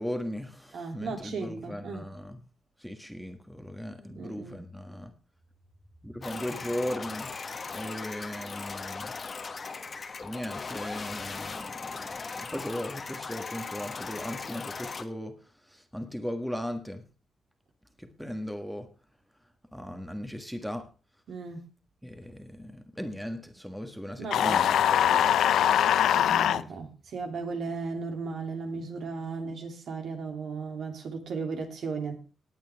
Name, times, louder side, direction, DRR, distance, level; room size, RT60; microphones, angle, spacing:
voice 1, 0.0-2.4 2.8-5.1 6.0-7.3 7.7-9.2 10.2-15.4 15.7-17.0 18.0-18.9 19.7-20.9 22.0-25.4 26.5-26.7, equal, ahead, 1.5 m, -37 dB
voice 2, 0.7-2.0 4.0-4.7 21.3-21.7 24.2-24.6 26.1-32.2, right 4 dB, 70° right, 2.9 m, -36 dB
sound 1, 6.2-15.0, left 4 dB, 35° left, 1.3 m, -38 dB
sound 2, 24.3-26.6, left 10 dB, 85° left, 0.5 m, -22 dB
18.5 x 9.1 x 3.5 m
cardioid pair, 110°, 0 cm